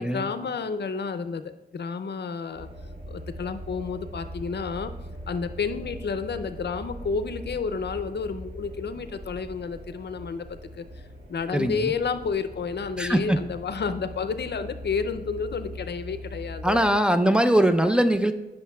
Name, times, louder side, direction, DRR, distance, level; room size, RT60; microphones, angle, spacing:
voice 1, 0.0-2.7 3.1-4.9 5.3-10.8 11.3-16.9, left 5 dB, 70° left, 10 dB, 0.5 m, -31 dB
sound 1, 2.5-17.0, equal, 75° right, 3.1 m, -41 dB
voice 2, 11.5-11.9 13.0-13.4 16.6-18.3, right 1 dB, 5° right, 6 dB, 0.5 m, -21 dB
17.5 x 6.5 x 2.3 m, 1.0 s
wide cardioid pair, 85°, 18 cm